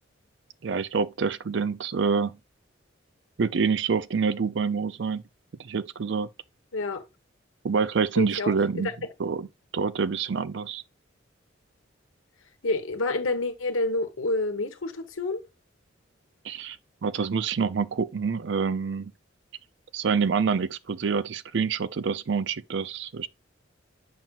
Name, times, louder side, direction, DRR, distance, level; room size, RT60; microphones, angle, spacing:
voice 1, 0.6-2.4 3.4-5.2 5.6-6.3 7.6-8.9 9.2-9.5 9.7-10.8 16.4-16.8 17.0-19.1 19.9-23.3, right 5 dB, 60° right, 0.4 m, -26 dB
voice 2, 6.7-7.0 8.2-8.9 12.6-15.4, left 2 dB, 85° left, 1.2 m, -28 dB
7.3 x 6.0 x 2.4 m
head